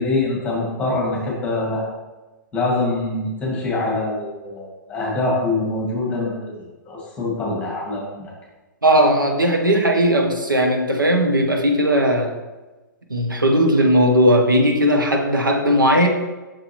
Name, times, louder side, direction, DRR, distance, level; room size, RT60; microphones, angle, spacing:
voice 1, 0.0-1.8 2.5-8.2, left 2 dB, 10° left, -3 dB, 1.9 m, -24 dB
voice 2, 8.8-12.4 13.1-16.1, equal, 80° right, 2 dB, 1.0 m, -17 dB
6.6 x 5.8 x 3.0 m, 1.2 s
figure-of-eight pair, 115°, 11 cm